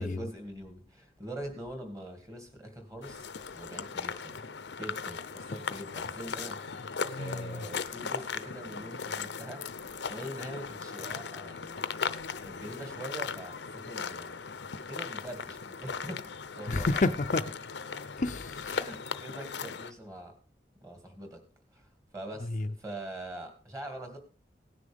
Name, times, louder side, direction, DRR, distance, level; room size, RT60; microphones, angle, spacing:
voice 1, 0.0-3.3 3.5-4.4 4.8-6.9 7.2-9.7 10.1-11.8 12.4-16.9 18.7-20.4 20.8-21.4 21.7-21.9 22.1-24.2, right 1 dB, 20° right, 2.3 m, -43 dB
sound 1, 3.0-19.9, left 5 dB, 90° left, 0.7 m, -38 dB
voice 2, 7.0-7.6 16.7-17.5 18.2-18.8 22.4-22.7, left 2 dB, 45° left, 0.5 m, -30 dB
17.0 x 9.9 x 3.6 m
head